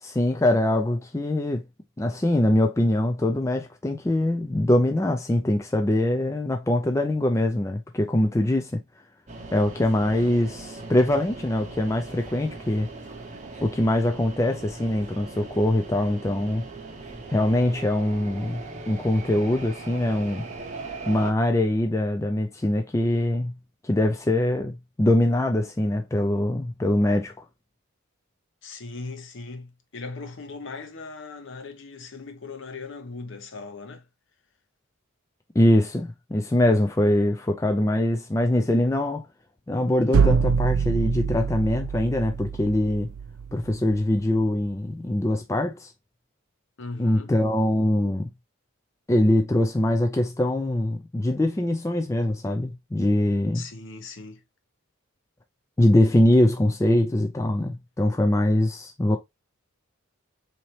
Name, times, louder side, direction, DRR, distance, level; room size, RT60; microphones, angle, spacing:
voice 1, 0.0-1.6 2.0-8.8 9.5-12.9 13.6-16.6 17.3-18.6 18.9-20.4 21.1-23.5 23.8-27.3 35.6-39.3 39.7-43.1 43.5-45.9 47.0-48.3 49.1-53.6 55.8-59.2, left 1 dB, 15° left, 0.3 m, -23 dB
sound 1, 9.3-21.3, right 3 dB, 35° right, 0.7 m, -39 dB
voice 2, 28.6-34.1 46.8-47.3 53.5-54.4, left 3 dB, 55° left, 0.7 m, -39 dB
sound 2, 40.1-44.0, right 6 dB, 80° right, 0.4 m, -25 dB
4.0 x 2.8 x 3.0 m
head